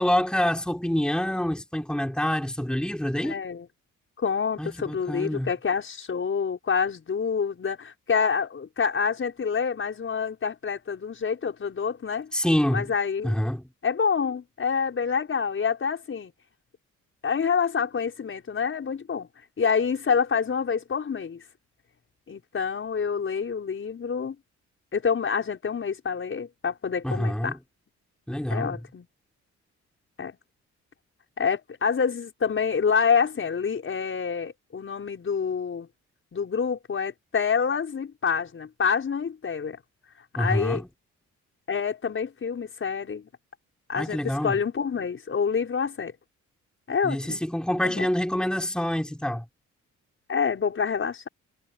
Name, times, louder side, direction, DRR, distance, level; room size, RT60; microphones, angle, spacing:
voice 1, 0.0-3.3 4.6-5.5 12.3-12.9 13.2-13.6 27.0-27.6 28.3-28.8 40.4-40.9 43.9-44.6 47.0-49.4, left 1 dB, 5° left, 4.3 m, -26 dB
voice 2, 3.2-3.7 4.2-12.3 12.7-13.4 13.8-16.3 17.2-19.3 19.6-21.4 22.3-24.4 24.9-27.6 28.5-29.1 30.2-30.4 31.4-35.9 36.3-39.8 40.4-40.8 41.7-43.3 43.9-46.1 46.9-47.4 47.8-48.1 50.3-51.3, left 6 dB, 45° left, 6.3 m, -27 dB
cardioid pair, 90°, 30 cm